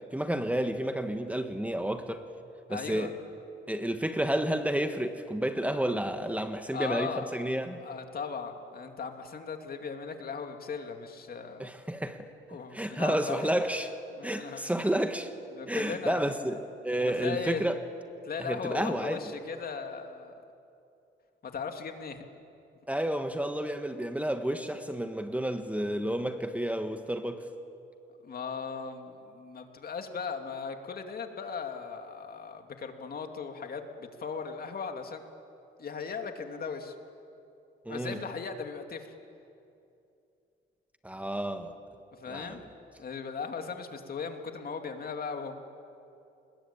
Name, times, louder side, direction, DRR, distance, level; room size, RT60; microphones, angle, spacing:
voice 1, 0.1-2.3 2.7-3.1 3.7-7.8 11.6-12.3 12.7-13.9 14.2-15.3 15.7-17.8 18.4-19.2 22.9-27.4 37.8-38.2 41.0-41.7 42.3-42.6, right 1 dB, 5° right, 1.5 m, -31 dB
voice 2, 2.7-3.1 6.7-7.5 7.8-11.7 12.5-13.5 14.2-14.6 15.5-16.3 17.0-17.7 18.2-20.3 21.4-22.3 28.2-35.2 35.8-36.9 37.9-39.1 42.1-42.7 43.0-45.5, left 5 dB, 50° left, 2.6 m, -38 dB
28.0 x 21.0 x 8.9 m
cardioid pair, 90°, 20 cm